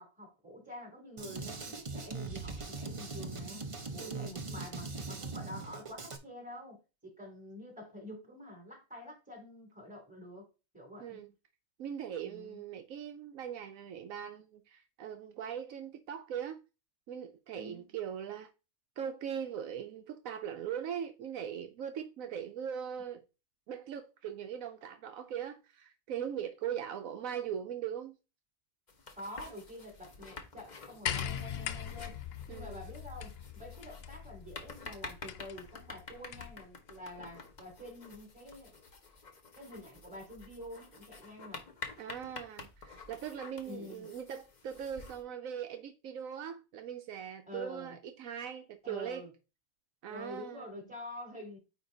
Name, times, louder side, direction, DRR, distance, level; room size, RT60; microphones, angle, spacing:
voice 1, 0.0-3.6 3.9-10.5 10.7-11.2 12.2-12.6 17.5-17.8 29.2-32.2 32.5-38.7 39.5-41.6 43.6-44.1 47.5-48.0 48.8-49.3 50.1-51.6, left 1 dB, 5° right, 3.0 m, -47 dB
Drum kit, 1.2-6.2, right 3 dB, 30° right, 0.7 m, -41 dB
voice 2, 4.0-4.3 11.0-11.3 11.8-16.6 17.1-18.5 19.0-23.2 23.7-28.2 32.5-32.8 42.0-49.3 50.0-50.6, right 8 dB, 80° right, 1.1 m, -40 dB
sound 1, 28.9-45.2, left 4 dB, 35° left, 1.0 m, -50 dB
sound 2, 31.1-36.7 37.7-37.8, left 9 dB, 60° left, 0.7 m, -41 dB
9.2 x 3.1 x 3.9 m
omnidirectional pair, 1.5 m